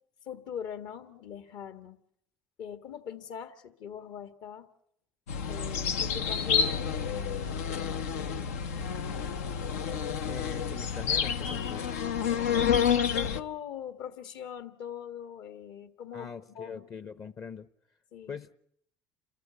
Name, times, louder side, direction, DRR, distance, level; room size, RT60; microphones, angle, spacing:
voice 1, 0.2-2.0 2.6-4.7 5.5-8.2 13.1-16.9 18.1-18.4, left 8 dB, 65° left, 11 dB, 1.7 m, -41 dB
sound 1, 5.3-13.4, left 7 dB, 90° left, 0.8 m, -29 dB
voice 2, 10.2-11.9 16.1-17.7 18.3-18.5, left 6 dB, 40° left, 15 dB, 0.9 m, -42 dB
28.5 x 14.0 x 8.1 m, 0.71 s
hypercardioid pair, 75°, 8 cm